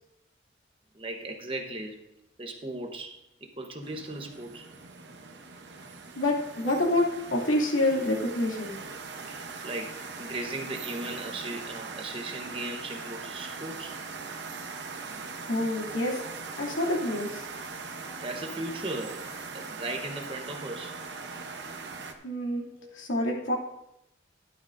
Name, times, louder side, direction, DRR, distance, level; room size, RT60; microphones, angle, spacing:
voice 1, 0.9-2.0 2.4-4.7 9.3-14.0 15.9-16.1 18.2-19.2 19.5-21.0 22.8-22.9, right 2 dB, 25° right, 3 dB, 1.1 m, -37 dB
sound 1, 3.8-22.1, right 4 dB, 60° right, 1.0 m, -41 dB
voice 2, 6.2-7.0 7.3-8.8 15.3-16.1 16.6-17.4 22.2-22.7 22.9-23.5, left 1 dB, 90° left, -2 dB, 2.6 m, -27 dB
13.5 x 11.5 x 2.6 m, 0.83 s
head